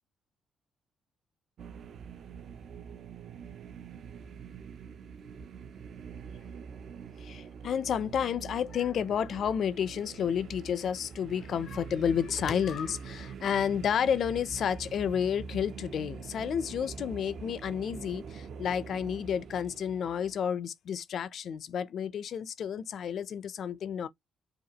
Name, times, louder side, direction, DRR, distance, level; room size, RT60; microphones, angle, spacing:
sound 1, 1.6-20.5, right 6 dB, 60° right, 0.6 m, -45 dB
voice 1, 7.2-24.1, left 8 dB, 60° left, 0.4 m, -31 dB
4.9 x 2.3 x 2.8 m
cardioid pair, 90°, 0 cm